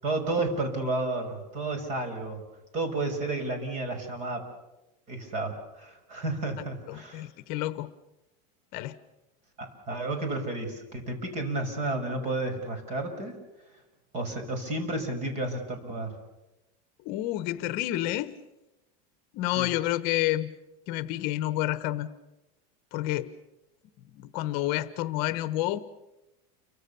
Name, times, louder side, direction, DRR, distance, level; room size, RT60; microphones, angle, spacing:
voice 1, 0.0-2.4 2.7-4.5 5.1-7.3 9.6-13.4 14.1-16.2 19.6-19.7, right 2 dB, 35° right, 6 dB, 5.6 m, -32 dB
voice 2, 6.9-7.9 8.7-9.0 17.0-18.4 19.3-20.5 20.9-22.1 22.9-23.3 24.1-25.8, left 15 dB, 45° left, 13 dB, 1.1 m, -29 dB
29.5 x 24.0 x 7.0 m, 0.99 s
supercardioid pair, 165°, 21 cm